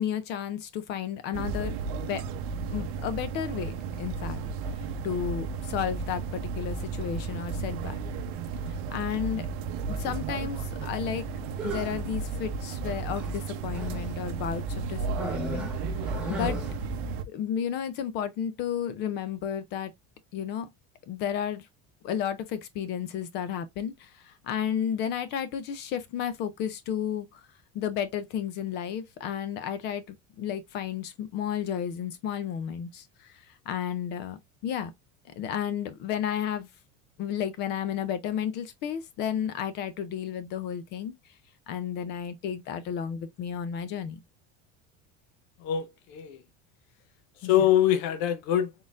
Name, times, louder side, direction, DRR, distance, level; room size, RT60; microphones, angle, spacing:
voice 1, 0.0-1.8 2.1-2.2 2.7-4.4 5.0-7.9 8.9-9.5 9.9-11.3 11.6-15.7 16.0-16.6 17.3-19.9 20.3-20.7 21.1-21.7 22.0-27.4 27.7-34.9 35.3-36.7 37.2-41.1 41.7-44.2 47.4-47.7, left 9 dB, 35° left, 0.4 m, -32 dB
sound 1, 1.3-17.2, right 4 dB, 60° right, 0.7 m, -33 dB
sound 2, 11.5-12.1 13.1-14.1 15.1-16.9, right 1 dB, 5° right, 1.1 m, -36 dB
voice 2, 45.6-46.4 47.4-48.8, left 11 dB, 70° left, 0.9 m, -24 dB
4.1 x 3.8 x 2.4 m
cardioid pair, 180°, 32 cm